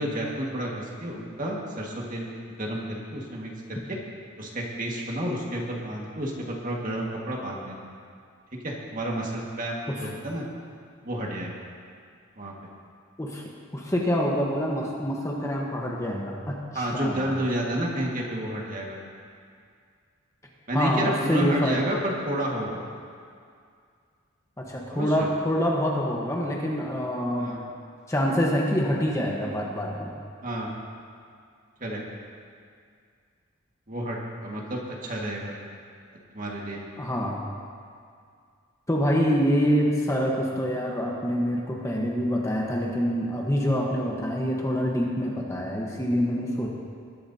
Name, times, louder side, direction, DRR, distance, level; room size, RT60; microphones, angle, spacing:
voice 1, 0.0-2.3 2.6-4.0 4.4-7.8 8.6-10.5 11.0-11.5 12.4-12.5 16.7-19.0 20.7-22.8 24.9-25.3 27.4-27.6 30.4-30.7 31.8-32.0 33.9-35.6 36.3-36.8, right 1 dB, 40° right, -2 dB, 1.8 m, -30 dB
voice 2, 13.7-17.3 20.7-21.8 24.6-27.5 28.1-30.1 37.0-37.4 38.9-46.7, equal, 15° left, -2 dB, 1.2 m, -26 dB
20.5 x 11.5 x 2.8 m, 2.2 s
head